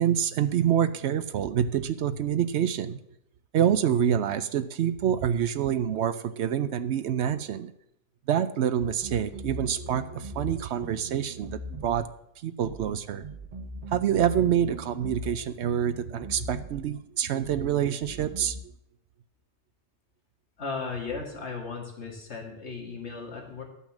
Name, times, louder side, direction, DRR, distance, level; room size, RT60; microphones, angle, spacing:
voice 1, 0.0-3.0 3.5-7.7 8.3-12.1 12.4-13.2 13.9-18.6, right 9 dB, 75° right, 12 dB, 0.9 m, -26 dB
sound 1, 9.0-10.5 10.8-12.1 12.6-12.9 13.2-15.3 15.6-16.9 17.4-17.7 18.0-18.6, equal, 40° right, 0.9 m, -40 dB
voice 2, 20.6-23.6, left 4 dB, 80° left, 2 dB, 2.3 m, -36 dB
12.0 x 5.6 x 7.2 m, 0.79 s
omnidirectional pair, 1.1 m